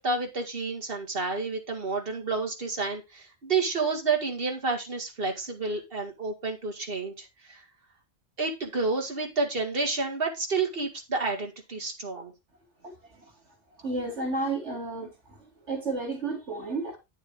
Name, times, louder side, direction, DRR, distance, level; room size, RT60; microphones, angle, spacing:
voice 1, 0.0-7.6 8.4-12.3, right 4 dB, 55° right, 2.1 m, -30 dB
voice 2, 13.8-15.1 15.7-17.0, right 3 dB, 80° right, 3.4 m, -31 dB
9.5 x 6.8 x 3.6 m
omnidirectional pair, 1.2 m